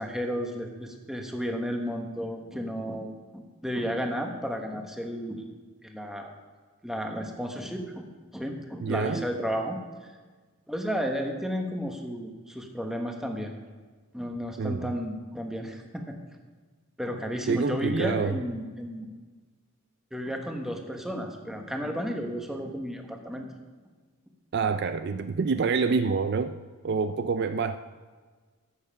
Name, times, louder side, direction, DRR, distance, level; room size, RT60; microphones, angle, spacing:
voice 1, 0.0-5.4 5.8-6.3 6.8-8.1 8.3-9.8 10.7-13.5 14.1-16.2 17.0-19.1 20.1-23.5, equal, ahead, 2 dB, 1.0 m, -33 dB
voice 2, 8.8-9.2 14.6-14.9 17.5-18.4 24.5-26.6 26.8-27.8, right 5 dB, 50° right, 10 dB, 0.3 m, -27 dB
13.5 x 7.2 x 5.6 m, 1.4 s
head